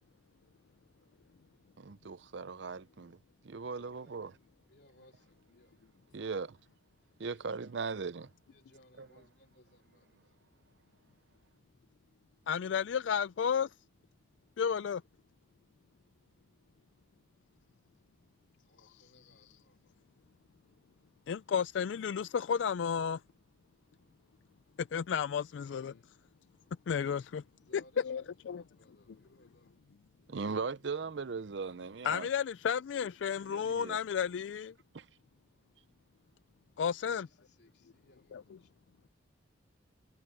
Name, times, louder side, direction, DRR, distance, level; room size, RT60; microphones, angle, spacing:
voice 1, 1.8-3.2 3.4-4.3 6.1-6.6 7.2-8.3 9.0-9.1 30.3-32.3 33.5-34.0 34.9-35.1, right 4 dB, 70° right, 0.6 m, -38 dB
voice 2, 3.7-4.2 4.7-5.8 6.3-6.5 7.4-7.8 8.5-10.2 18.7-19.8 25.6-26.1 27.6-28.3 28.5-29.7 36.8-38.7, left 1 dB, 60° left, 3.7 m, -64 dB
voice 3, 12.5-13.7 14.6-15.0 18.8-19.3 21.3-23.2 24.8-26.0 26.9-27.4 27.7-28.6 32.0-34.7 36.8-37.3 38.3-38.6, left 7 dB, 80° left, 0.4 m, -33 dB
head